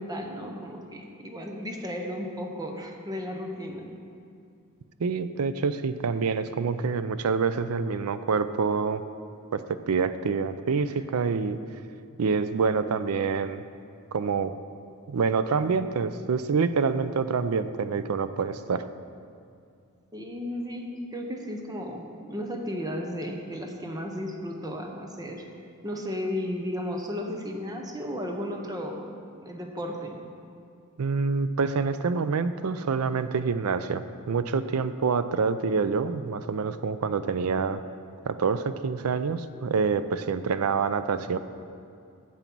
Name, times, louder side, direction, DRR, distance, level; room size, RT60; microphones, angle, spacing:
voice 1, 0.0-3.9 10.9-11.0 20.1-25.4 25.8-29.1 29.3-30.2, equal, 15° right, 2 dB, 0.9 m, -34 dB
voice 2, 5.0-9.0 9.5-11.6 12.2-13.6 14.1-14.5 15.1-18.8 31.0-37.8 38.3-41.4, right 5 dB, 75° right, 12 dB, 0.5 m, -26 dB
9.0 x 7.1 x 6.1 m, 2.4 s
head